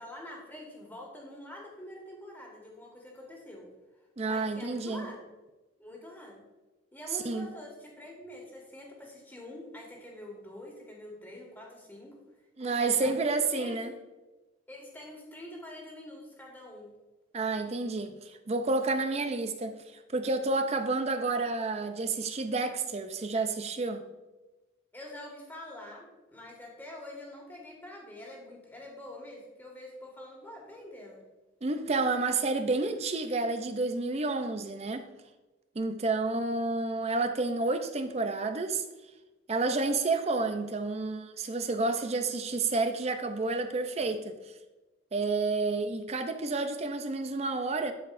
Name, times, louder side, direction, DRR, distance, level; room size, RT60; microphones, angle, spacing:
voice 1, 0.0-3.7 4.2-5.2 5.8-6.4 6.9-12.2 12.6-13.8 14.7-16.9 24.9-31.2, left 1 dB, 10° left, -1 dB, 1.7 m, -46 dB
voice 2, 4.2-5.1 7.2-7.5 12.6-13.9 17.3-19.8 20.1-24.0 31.6-35.0 35.8-38.8 39.5-44.4 45.1-47.9, right 3 dB, 30° right, 8 dB, 0.5 m, -30 dB
12.5 x 4.7 x 2.5 m, 1.1 s
head